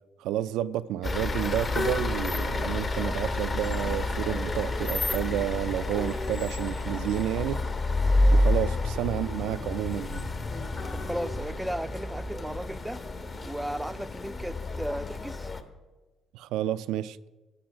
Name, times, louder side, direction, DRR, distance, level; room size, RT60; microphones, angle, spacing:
voice 1, 0.2-7.6 8.3-10.3 16.3-17.3, right 12 dB, 80° right, 0.3 m, -30 dB
sound 1, 1.0-15.6, left 2 dB, 40° left, 1.2 m, -29 dB
voice 2, 10.9-13.1 13.4-15.5, equal, 5° right, 0.5 m, -35 dB
12.0 x 10.0 x 5.1 m
supercardioid pair, 70°, 0 cm